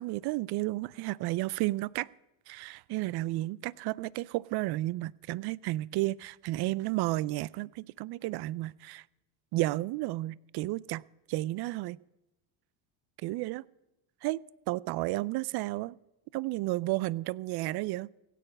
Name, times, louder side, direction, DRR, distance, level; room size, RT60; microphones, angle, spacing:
voice 1, 0.0-2.1 2.5-9.0 9.5-11.0 11.3-12.0 13.2-13.6 14.2-14.4 14.7-16.0 16.3-18.1, right 18 dB, 55° right, 23 dB, 0.5 m, -32 dB
16.5 x 9.3 x 5.4 m, 0.97 s
cardioid pair, 115°, 49 cm